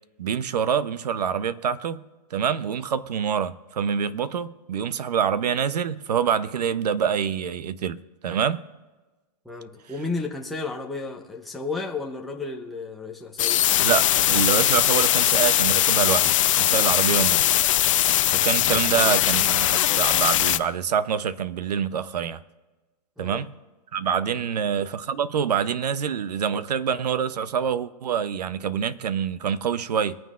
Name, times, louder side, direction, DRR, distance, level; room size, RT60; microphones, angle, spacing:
voice 1, 0.2-2.0 2.3-8.6 13.8-17.5 18.3-22.4 23.2-23.5 23.9-30.2, right 7 dB, 85° right, 0.8 m, -26 dB
voice 2, 9.4-13.6 17.1-17.4 18.9-19.0 23.2-23.4 24.4-24.6, left 3 dB, ahead, 0.7 m, -33 dB
sound 1, 13.4-20.6, left 13 dB, 55° left, 0.6 m, -20 dB
22.5 x 9.3 x 2.5 m
hypercardioid pair, 155°, 20 cm